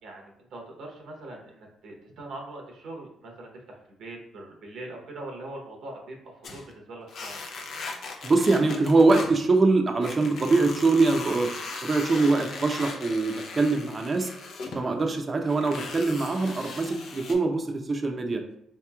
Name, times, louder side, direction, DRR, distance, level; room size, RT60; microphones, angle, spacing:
voice 1, 0.0-6.2 6.5-7.4, right 2 dB, 75° right, 0 dB, 0.9 m, -42 dB
sound 1, 6.4-6.7 7.1-9.4 10.0-14.8 15.4-17.3, left 3 dB, 70° left, 0.6 m, -38 dB
voice 2, 8.2-11.5 11.8-14.3 14.7-18.4, right 3 dB, 35° right, 4 dB, 0.6 m, -23 dB
4.6 x 2.9 x 2.3 m, 0.75 s
cardioid pair, 90°, 0 cm